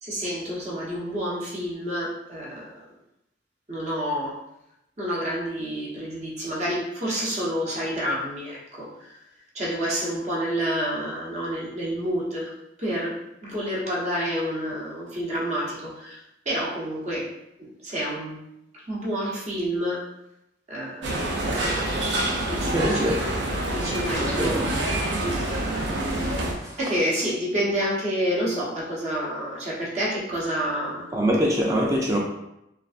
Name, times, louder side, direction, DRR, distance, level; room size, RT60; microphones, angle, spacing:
voice 1, 0.0-2.8 3.7-4.4 5.0-9.2 9.5-12.5 12.8-16.2 16.4-17.3 17.6-18.4 18.7-20.1 20.7-21.2 22.5-23.0 23.7-25.1 26.8-31.1, equal, 35° right, -6 dB, 0.8 m, -29 dB
sound 1, 21.0-26.5, right 1 dB, 70° right, 0.5 m, -26 dB
voice 2, 22.7-23.2 24.2-24.6 26.0-26.8 31.1-32.2, equal, 15° right, -2 dB, 0.3 m, -25 dB
3.2 x 2.4 x 2.5 m, 0.84 s
head